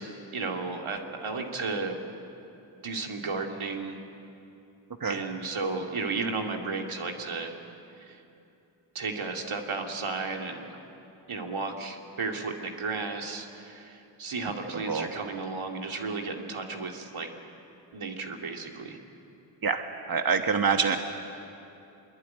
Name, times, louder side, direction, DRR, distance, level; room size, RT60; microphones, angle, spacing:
voice 1, 0.0-2.0 2.8-4.0 5.1-7.5 8.0-8.2 8.9-10.8 11.3-17.3 17.9-19.0, right 4 dB, 80° right, 2 dB, 2.5 m, -34 dB
voice 2, 20.1-21.0, right 5 dB, 45° right, 5 dB, 1.4 m, -25 dB
24.5 x 22.0 x 9.3 m, 2.8 s
cardioid pair, 60°, 48 cm